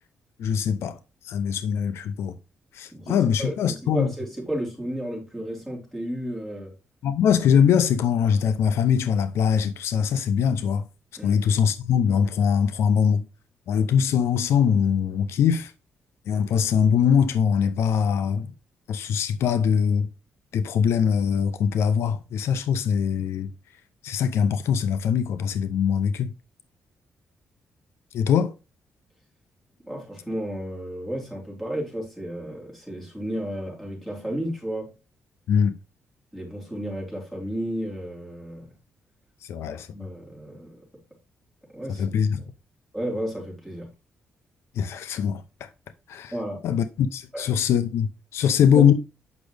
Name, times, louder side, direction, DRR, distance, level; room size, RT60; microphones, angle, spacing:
voice 1, 0.4-1.0 1.2-2.3 2.7-4.1 7.0-10.8 11.2-13.2 13.7-15.7 16.3-18.5 18.9-20.1 20.5-23.5 24.0-26.3 28.1-28.5 35.5-35.8 39.4-39.9 41.9-42.4 44.8-45.7 46.1-46.3 46.6-48.9, left 7 dB, 80° left, 0.7 m, -22 dB
voice 2, 2.9-6.7 11.2-11.4 29.8-34.9 36.3-38.7 39.9-40.8 41.7-42.1 42.9-43.9 46.3-46.6 47.3-47.5 48.7-48.9, equal, 5° left, 4.0 m, -32 dB
8.4 x 6.3 x 3.4 m
cardioid pair, 130°, 4 cm